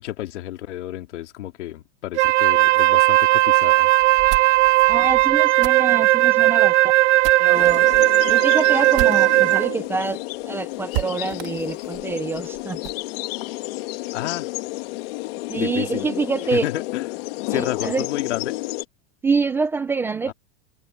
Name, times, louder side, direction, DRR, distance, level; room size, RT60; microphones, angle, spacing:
voice 1, 0.0-3.9 14.1-14.5 15.6-16.1 16.5-17.1 17.5-18.6 20.3-20.4, left 14 dB, 90° left, 2.9 m, -30 dB
Wind instrument woodwind instrument, 2.2-9.8, right 18 dB, 85° right, 0.5 m, -17 dB
sound 1, 4.0-9.7 10.0-10.1 10.4-10.5 10.9-13.0, right 24 dB, 50° right, 3.3 m, -34 dB
voice 2, 4.9-6.8 7.4-7.9 8.3-12.8 15.5-16.7 17.5-18.1 19.2-20.3, right 4 dB, 5° right, 0.4 m, -26 dB
sound 2, 7.5-18.9, left 20 dB, 55° left, 2.2 m, -31 dB
supercardioid pair, 165°, 34 cm